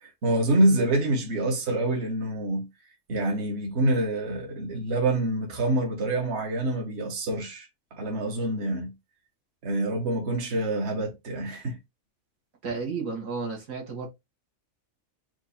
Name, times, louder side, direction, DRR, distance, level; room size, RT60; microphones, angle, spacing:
voice 1, 0.0-2.7 3.1-8.9 9.6-11.8, right 1 dB, 55° right, 1.4 m, -26 dB
voice 2, 12.6-14.1, right 4 dB, 70° right, 1.6 m, -32 dB
4.7 x 2.4 x 4.1 m
omnidirectional pair, 1.4 m